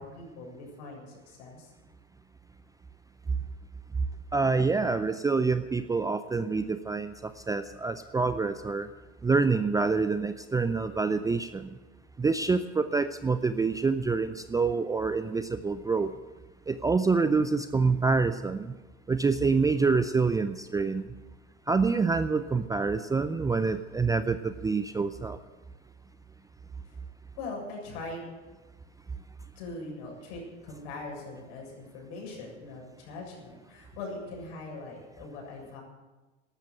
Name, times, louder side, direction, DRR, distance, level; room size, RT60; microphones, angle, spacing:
voice 1, 0.0-1.7 26.8-27.0 27.4-28.2 29.6-35.8, left 2 dB, 60° left, 0 dB, 7.4 m, -41 dB
voice 2, 4.3-8.9 9.2-11.7 12.2-16.1 16.7-18.7 19.1-21.0 21.7-25.4, right 4 dB, 10° right, 12 dB, 0.5 m, -26 dB
14.0 x 12.0 x 8.1 m, 1.2 s
hypercardioid pair, 90°, 36 cm